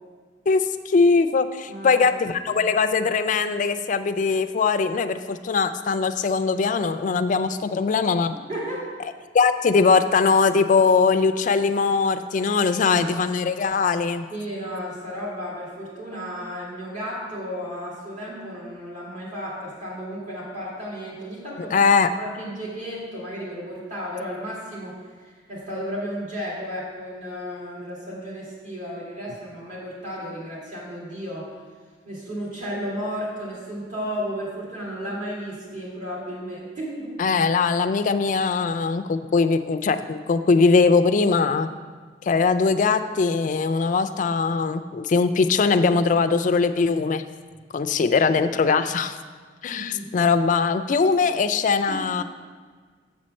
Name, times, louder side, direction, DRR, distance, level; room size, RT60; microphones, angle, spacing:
voice 1, 0.5-8.3 9.3-14.3 21.6-22.1 37.2-41.7 42.2-47.2 47.7-49.2 49.6-52.2, left 4 dB, 45° left, 10 dB, 0.3 m, -21 dB
voice 2, 1.7-2.0 2.5-2.6 8.5-8.9 12.6-13.2 14.3-21.8 22.2-31.5 32.0-37.1 49.7-50.1 51.9-52.0, equal, 45° right, -6 dB, 2.4 m, -33 dB
7.4 x 4.3 x 6.3 m, 1.6 s
head